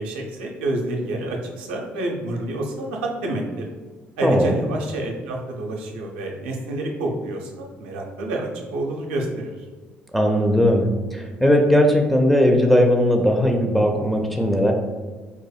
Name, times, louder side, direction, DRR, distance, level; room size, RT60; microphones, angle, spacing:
voice 1, 0.0-3.7 4.2-9.6, right 1 dB, 70° right, 0 dB, 0.5 m, -28 dB
voice 2, 4.2-4.6 10.1-14.7, equal, ahead, 1 dB, 0.4 m, -18 dB
3.9 x 2.5 x 2.3 m, 1.4 s
figure-of-eight pair, 50°, 6 cm